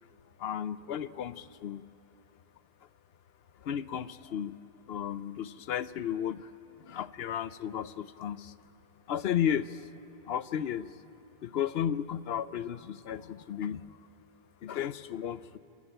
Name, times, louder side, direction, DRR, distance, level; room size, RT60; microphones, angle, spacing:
voice 1, 0.4-1.9 3.6-4.6 4.9-6.5 6.8-8.5 9.1-9.8 10.3-10.9 11.4-14.0 14.6-15.6, left 9 dB, 65° left, 15 dB, 0.9 m, -34 dB
28.0 x 14.0 x 9.0 m, 2.9 s
omnidirectional pair, 1.1 m